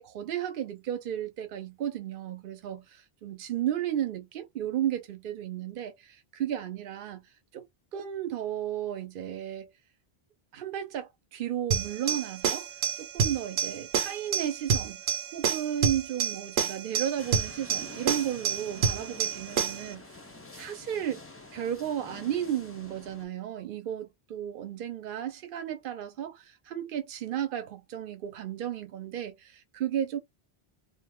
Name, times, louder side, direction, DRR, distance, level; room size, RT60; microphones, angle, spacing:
voice 1, 0.0-7.2 7.5-7.7 7.9-9.7 10.5-12.7 13.0-15.0 15.3-20.1 20.5-21.2 21.5-30.2, right 10 dB, 60° right, 0.8 m, -34 dB
sound 1, 11.7-19.9, right 6 dB, 85° right, 1.0 m, -29 dB
sound 2, 17.2-23.3, left 2 dB, 15° left, 0.5 m, -47 dB
2.6 x 2.2 x 3.6 m
omnidirectional pair, 1.0 m